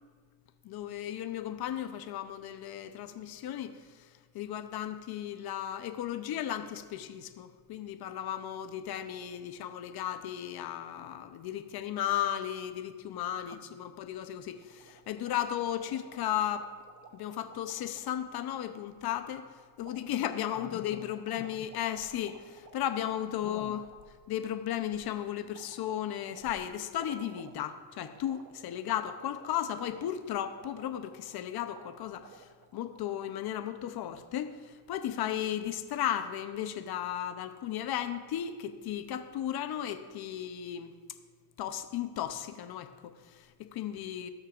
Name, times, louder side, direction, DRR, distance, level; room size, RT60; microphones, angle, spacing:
voice 1, 0.6-4.1 4.3-16.7 17.1-19.5 19.8-23.9 24.3-40.9 41.6-44.3, left 11 dB, 55° left, 9 dB, 0.8 m, -35 dB
sound 1, 14.5-18.2 19.8-24.1 25.5-31.4 31.7-31.9 32.2-33.3, right 6 dB, 40° right, 0.9 m, -55 dB
18.0 x 6.4 x 2.5 m, 1.5 s
cardioid pair, 125°, 47 cm